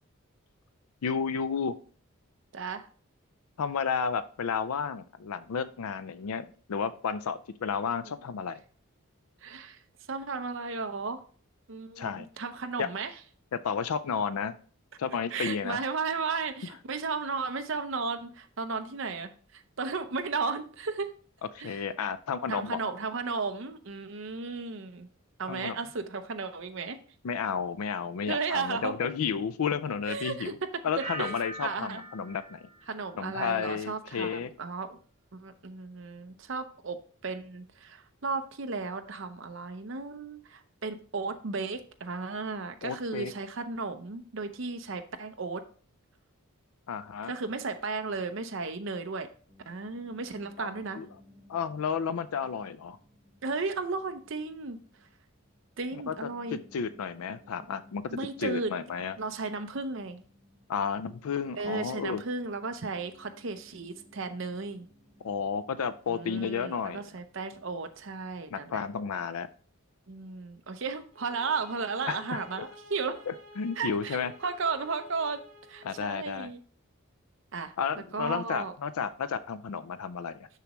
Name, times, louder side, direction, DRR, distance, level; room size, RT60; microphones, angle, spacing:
voice 1, 1.0-1.7 3.6-8.6 12.0-12.3 12.8-12.9 13.6-14.5 15.0-15.8 21.5-22.9 25.5-25.8 27.2-30.6 30.8-32.6 33.2-34.5 42.8-43.3 46.9-47.3 50.6-50.7 51.0-51.1 51.5-53.0 56.1-56.2 56.7-58.0 58.4-59.2 60.7-62.2 65.2-67.0 68.5-69.5 72.1-72.4 73.3-74.3 75.8-76.5 77.8-80.5, left 6 dB, 80° left, 14 dB, 0.4 m, -32 dB
voice 2, 2.5-2.9 8.0-8.1 9.4-9.8 10.1-11.2 11.7-13.1 15.3-21.1 21.6-21.8 22.5-25.1 25.4-27.0 28.3-28.9 30.1-30.5 31.2-31.3 31.6-32.0 32.9-35.0 35.3-45.6 47.2-49.3 49.7-51.0 53.4-54.8 55.8-56.6 58.1-58.7 59.2-60.2 61.6-64.9 66.1-68.8 70.1-73.2 73.8-75.4 75.7-76.6 77.5-77.7 78.1-78.7, right 4 dB, 55° right, 7 dB, 0.7 m, -34 dB
sound 1, 31.0-33.8 34.1-34.6, right 2 dB, 20° right, 3.0 m, -43 dB
Piano, 49.5-68.9, left 1 dB, 25° left, 2.9 m, -60 dB
sound 2, 71.1-76.1, left 1 dB, 40° right, 2.5 m, -51 dB
6.7 x 6.2 x 3.0 m, 0.42 s
head